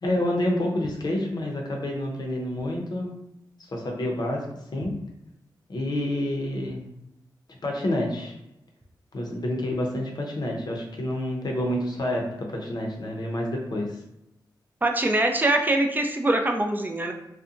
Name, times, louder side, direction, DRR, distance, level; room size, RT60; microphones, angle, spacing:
voice 1, 0.0-3.2 3.6-5.0 5.7-6.9 7.5-8.4 9.1-14.0, left 1 dB, 55° left, 0 dB, 0.6 m, -28 dB
voice 2, 14.8-17.1, right 2 dB, 20° right, 4 dB, 0.4 m, -23 dB
2.7 x 2.1 x 2.4 m, 0.85 s
cardioid pair, 60°, 8 cm